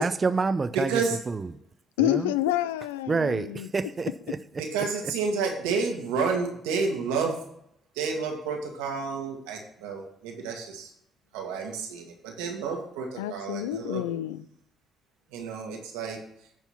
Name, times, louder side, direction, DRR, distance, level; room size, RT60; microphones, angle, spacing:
voice 1, 0.0-1.5 2.0-2.3 3.1-4.4, right 4 dB, 35° right, 12 dB, 0.5 m, -28 dB
voice 2, 0.7-1.2 4.6-7.4 7.9-10.9 11.3-14.0 15.3-16.2, right 5 dB, 85° right, 2 dB, 1.6 m, -30 dB
voice 3, 2.0-3.7 13.2-14.4, left 13 dB, 90° left, 15 dB, 0.3 m, -28 dB
9.1 x 4.5 x 5.8 m, 0.74 s
hypercardioid pair, 50°, 0 cm